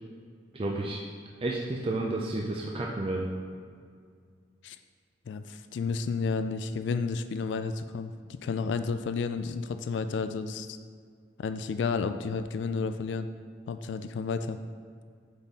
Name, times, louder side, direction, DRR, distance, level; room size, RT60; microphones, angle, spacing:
voice 1, 0.5-1.0 1.4-3.3, right 2 dB, 30° right, -1 dB, 0.4 m, -31 dB
voice 2, 5.3-10.8 11.4-13.3 13.7-14.6, left 4 dB, 80° left, 10 dB, 0.3 m, -31 dB
8.0 x 4.1 x 3.7 m, 2.1 s
head